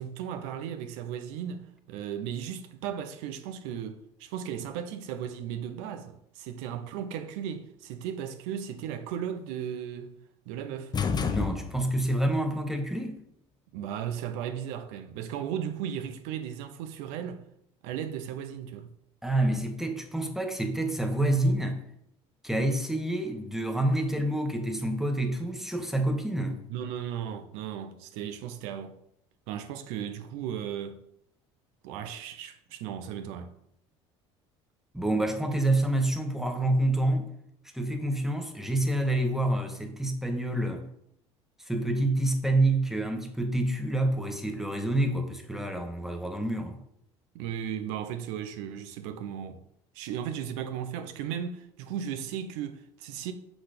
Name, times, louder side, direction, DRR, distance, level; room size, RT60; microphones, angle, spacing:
voice 1, 0.0-10.2 10.5-10.9 13.7-17.4 17.8-18.9 26.7-29.0 29.5-31.0 31.8-33.5 47.3-49.6 49.9-53.3, right 9 dB, 75° right, 0.8 m, -36 dB
sound 1, 10.9-12.2, left 5 dB, 30° left, 0.7 m, -29 dB
voice 2, 11.3-13.2 19.2-21.8 22.4-26.6 34.9-37.3 37.7-40.8 41.7-46.8, right 1 dB, ahead, 1.2 m, -27 dB
6.0 x 4.0 x 5.0 m
hypercardioid pair, 75°, 14 cm